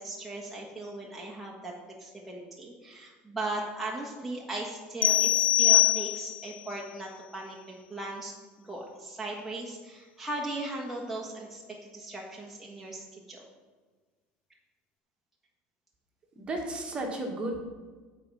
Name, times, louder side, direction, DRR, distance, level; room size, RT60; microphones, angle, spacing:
voice 1, 0.0-1.7 2.0-13.4, right 2 dB, 5° right, -3 dB, 1.6 m, -38 dB
sound 1, 5.0-6.5, left 14 dB, 40° left, 0.4 m, -23 dB
voice 2, 16.4-17.6, right 1 dB, 25° right, 1 dB, 1.8 m, -33 dB
14.5 x 4.9 x 5.5 m, 1.4 s
cardioid pair, 140°, 4 cm